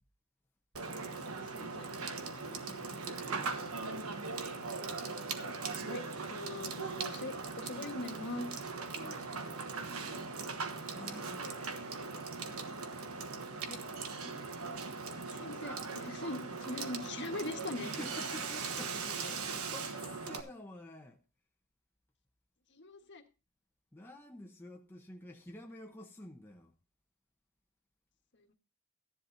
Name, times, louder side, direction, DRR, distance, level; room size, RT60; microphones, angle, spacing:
Water / Water tap faucet / Sink (filling or washing), 0.7-20.4, right 4 dB, 85° right, 1.3 m, -40 dB
voice 1, 1.3-1.9 5.8-6.0 6.3-8.5 13.7-13.8 14.2-14.3 15.3-17.9 22.7-23.2 28.5-28.6, left 2 dB, 55° left, 1.5 m, -42 dB
voice 2, 2.3-3.7 8.9-11.8 17.8-21.2 23.9-26.7, left 1 dB, 10° left, 1.0 m, -50 dB
15.0 x 10.5 x 2.7 m
head